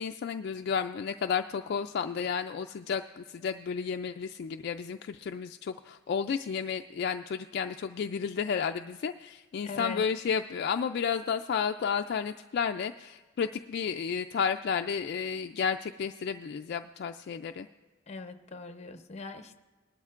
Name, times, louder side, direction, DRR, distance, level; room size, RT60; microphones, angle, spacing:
voice 1, 0.0-17.7, left 6 dB, 55° left, 7 dB, 0.3 m, -32 dB
voice 2, 9.6-10.0 18.1-19.6, left 4 dB, 35° left, 8 dB, 0.7 m, -41 dB
19.5 x 12.5 x 2.5 m, 1.4 s
head